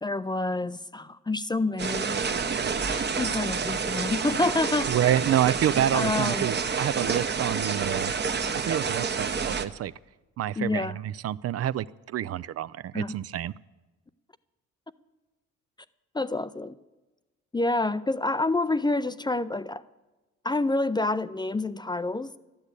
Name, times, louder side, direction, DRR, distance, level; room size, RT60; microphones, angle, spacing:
voice 1, 0.0-2.2 2.9-4.9 5.9-6.5 10.6-11.0 12.9-13.2 16.1-16.7 17.5-19.8 20.4-22.3, left 2 dB, 15° left, 14 dB, 0.4 m, -28 dB
sound 1, 1.8-9.6, right 5 dB, 35° right, 0.9 m, -29 dB
voice 2, 4.9-8.1 8.5-9.9 10.4-13.5, right 11 dB, 55° right, 17 dB, 0.4 m, -28 dB
12.0 x 10.5 x 8.2 m, 1.1 s
cardioid pair, 90°, 30 cm